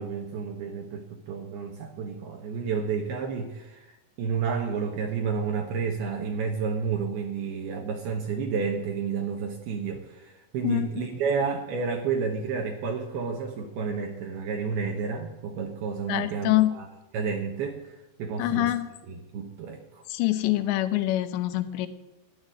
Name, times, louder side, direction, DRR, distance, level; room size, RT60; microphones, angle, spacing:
voice 1, 0.0-16.9 17.1-18.7 19.1-20.0, right 5 dB, 70° right, 2 dB, 2.8 m, -31 dB
voice 2, 16.1-16.7 18.4-18.9 20.1-21.9, left 15 dB, 80° left, 10 dB, 3.1 m, -25 dB
14.5 x 10.5 x 7.8 m, 1.0 s
omnidirectional pair, 5.2 m